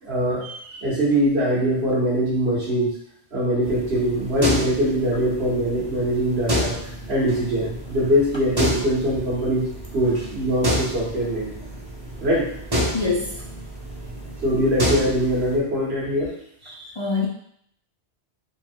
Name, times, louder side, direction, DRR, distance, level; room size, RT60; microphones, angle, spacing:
voice 1, 0.0-2.9 3.3-6.8 7.1-9.7 9.9-11.5 12.2-12.5 14.4-16.3 16.6-16.9, equal, 60° right, -7 dB, 1.9 m, -22 dB
sound 1, 3.6-15.6, equal, 25° right, 0.7 m, -29 dB
voice 2, 12.9-13.4 17.0-17.3, left 4 dB, 40° left, -3 dB, 0.4 m, -24 dB
4.0 x 2.4 x 4.5 m, 0.67 s
omnidirectional pair, 1.2 m